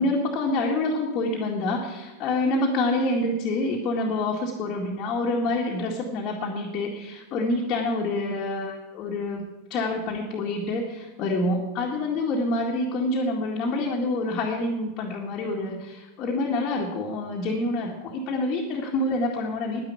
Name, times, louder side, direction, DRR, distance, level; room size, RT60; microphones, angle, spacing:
voice 1, 0.0-19.8, left 2 dB, 35° left, -2 dB, 2.0 m, -27 dB
10.5 x 10.5 x 8.4 m, 1.1 s
figure-of-eight pair, 90°, 0 cm